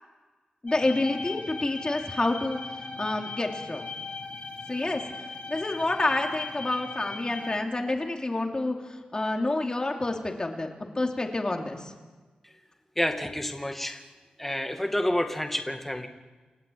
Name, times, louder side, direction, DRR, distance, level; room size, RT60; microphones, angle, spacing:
voice 1, 0.6-2.6 3.0-3.9 4.7-5.0 5.5-8.8 9.1-10.7 10.9-11.9, left 2 dB, 30° left, 2 dB, 3.0 m, -28 dB
sound 1, 0.7-7.6, left 3 dB, 60° left, 5.0 m, -38 dB
voice 2, 13.0-14.0 14.4-16.1, left 1 dB, 10° left, 5 dB, 2.2 m, -29 dB
29.0 x 13.5 x 8.7 m, 1.3 s
wide cardioid pair, 90°, 3 cm